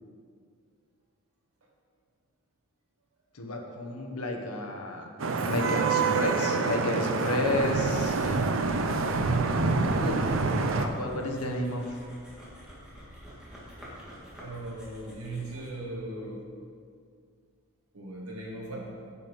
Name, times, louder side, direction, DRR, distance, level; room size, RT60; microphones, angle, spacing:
voice 1, 3.3-5.1 5.5-9.3 9.8-10.3 10.7-12.0, left 1 dB, 90° left, 2 dB, 1.2 m, -32 dB
Vehicle horn car horn honking / Traffic noise roadway noise, 5.2-10.9, right 4 dB, 60° right, 0.6 m, -26 dB
sound 1, 9.5-15.8, equal, 5° right, 2.0 m, -48 dB
voice 2, 14.4-16.4 17.9-18.9, right 2 dB, 90° right, -2 dB, 2.1 m, -38 dB
8.4 x 7.4 x 5.4 m, 2.2 s
head